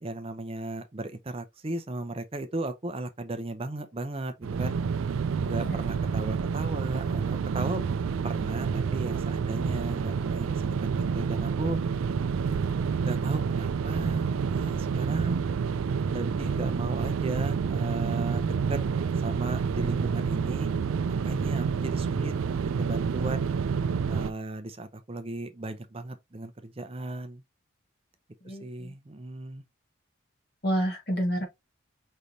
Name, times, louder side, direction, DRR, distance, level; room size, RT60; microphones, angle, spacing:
voice 1, 0.0-4.7 5.4-7.8 8.2-11.8 13.0-15.4 16.1-18.8 19.2-20.7 21.1-23.5 24.1-27.4 28.4-29.6, right 2 dB, 30° right, 0.5 m, -36 dB
sound 1, 4.4-24.3, right 6 dB, 80° right, 0.3 m, -28 dB
voice 2, 28.4-28.9 30.6-31.4, equal, 50° left, 1.8 m, -29 dB
5.1 x 3.3 x 2.7 m
head